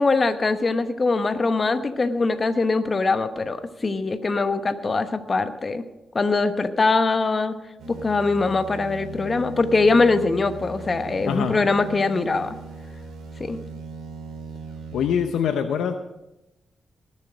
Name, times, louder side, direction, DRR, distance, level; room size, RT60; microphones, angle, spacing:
voice 1, 0.0-5.8 6.1-7.5 7.9-12.5 13.4-13.6, left 3 dB, 40° left, 9 dB, 1.0 m, -22 dB
sound 1, 7.8-15.2, right 5 dB, 85° right, 2.5 m, -38 dB
voice 2, 14.9-15.9, left 8 dB, 85° left, 7 dB, 0.7 m, -24 dB
19.5 x 7.5 x 5.0 m, 0.94 s
cardioid pair, 60°, 0 cm